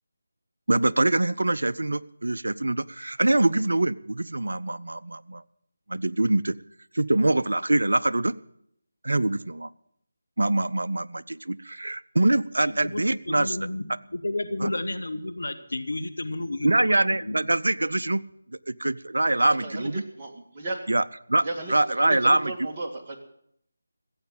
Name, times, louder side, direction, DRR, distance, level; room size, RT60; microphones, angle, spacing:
voice 1, 0.7-5.4 5.9-6.5 6.9-8.3 9.0-9.7 10.4-13.6 14.6-14.7 16.6-18.2 18.7-20.0 20.9-22.5, right 2 dB, 70° right, 14 dB, 0.6 m, -24 dB
voice 2, 12.6-13.8 14.1-17.4, left 2 dB, 70° left, 10 dB, 1.5 m, -32 dB
voice 3, 19.5-20.8 21.4-23.2, right 2 dB, 30° right, 0 dB, 2.2 m, -35 dB
15.5 x 8.1 x 9.0 m, 0.72 s
figure-of-eight pair, 160°, 0 cm